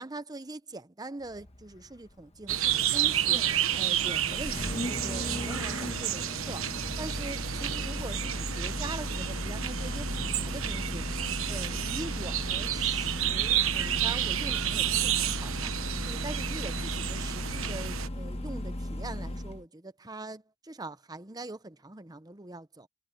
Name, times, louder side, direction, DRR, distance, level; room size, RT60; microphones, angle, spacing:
voice 1, 0.0-3.4 3.8-6.6 7.0-11.1 11.5-15.7 16.0-22.9, right 2 dB, 20° right, 0.8 m, -42 dB
Engine starting, 1.2-19.6, left 1 dB, 30° left, 1.2 m, -36 dB
sound 1, 2.5-18.1, right 10 dB, 75° right, 1.2 m, -31 dB
head